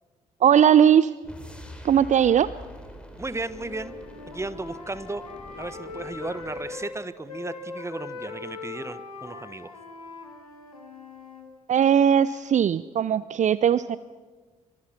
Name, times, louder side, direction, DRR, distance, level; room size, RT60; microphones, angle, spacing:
voice 1, 0.4-1.1 1.8-2.5 11.7-14.0, right 9 dB, 45° right, 17 dB, 0.6 m, -19 dB
sound 1, 1.2-6.8, equal, 5° left, 5.0 m, -45 dB
voice 2, 3.2-3.9 4.3-5.3 5.6-9.7, right 2 dB, 15° right, 14 dB, 1.3 m, -35 dB
Wind instrument woodwind instrument, 3.4-6.9 7.3-11.5, left 4 dB, 85° left, 2.0 m, -40 dB
25.0 x 25.0 x 5.9 m, 1.3 s
figure-of-eight pair, 40°, 18 cm